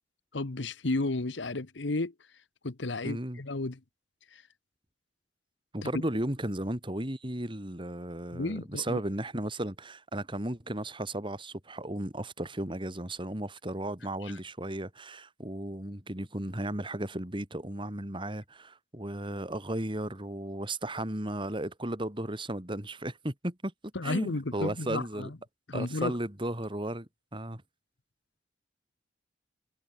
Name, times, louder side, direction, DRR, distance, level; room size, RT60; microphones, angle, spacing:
voice 1, 0.3-2.1 2.6-3.8 4.3-4.4 5.8-6.0 8.3-9.0 14.2-14.3 23.9-25.4 25.7-26.2, left 2 dB, 80° left, 1.2 m, -33 dB
voice 2, 3.0-3.4 5.7-23.7 24.0-25.3 25.7-27.6, right 1 dB, 30° right, 3.3 m, -35 dB
head